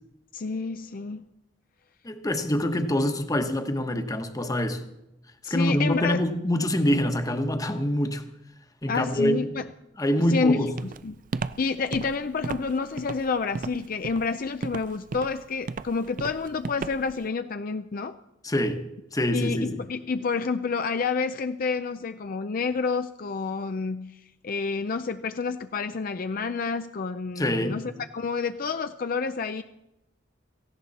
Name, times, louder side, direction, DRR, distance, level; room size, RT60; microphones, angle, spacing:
voice 1, 0.3-1.2 5.4-6.2 8.9-9.7 10.3-11.2 11.6-18.2 19.3-24.2 24.4-29.6, left 4 dB, 50° left, 0.5 m, -29 dB
voice 2, 2.0-4.8 5.5-8.2 8.8-9.5 10.0-10.7 18.4-18.8 19.1-19.8 27.4-27.8, left 1 dB, 20° left, 1.2 m, -25 dB
Walk footsteps, 10.8-17.2, right 4 dB, 45° right, 0.4 m, -35 dB
17.5 x 15.0 x 4.2 m
head